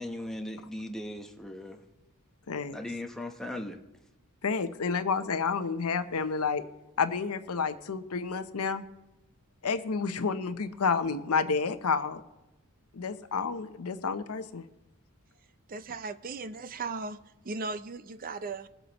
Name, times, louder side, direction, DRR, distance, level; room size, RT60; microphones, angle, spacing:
voice 1, 0.0-1.8 2.7-3.8, left 1 dB, ahead, 0.9 m, -38 dB
voice 2, 2.5-2.8 4.4-6.6 7.0-8.8 9.6-12.2 12.9-14.7, left 5 dB, 80° left, 0.7 m, -30 dB
voice 3, 15.7-18.7, right 3 dB, 40° right, 0.5 m, -37 dB
21.5 x 8.0 x 3.0 m
head